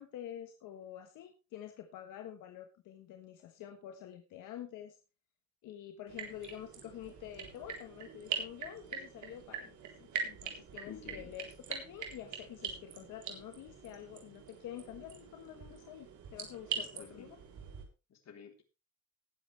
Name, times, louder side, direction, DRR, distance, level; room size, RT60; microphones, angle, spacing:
voice 1, 0.0-5.0 5.6-17.4, left 10 dB, 90° left, 5 dB, 1.5 m, -48 dB
sound 1, 6.1-17.8, right 6 dB, 75° right, 3.9 m, -43 dB
voice 2, 10.9-11.3 16.8-17.3 18.1-18.6, left 7 dB, 60° left, 4 dB, 3.7 m, -51 dB
19.0 x 8.3 x 3.4 m, 0.30 s
cardioid pair, 90°, 30 cm